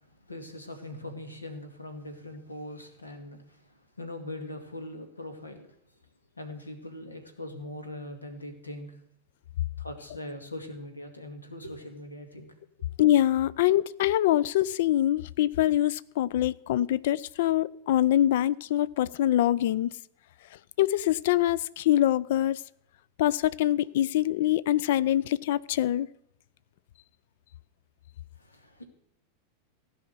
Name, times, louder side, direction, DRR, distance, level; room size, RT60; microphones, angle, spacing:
voice 1, 0.0-5.7 6.4-8.9 9.8-12.5 28.4-28.8, left 1 dB, 80° left, 2.3 m, -41 dB
voice 2, 13.0-19.9 20.8-22.6 23.2-26.1, left 13 dB, 55° left, 0.4 m, -24 dB
16.5 x 5.6 x 9.4 m
figure-of-eight pair, 90°, 0 cm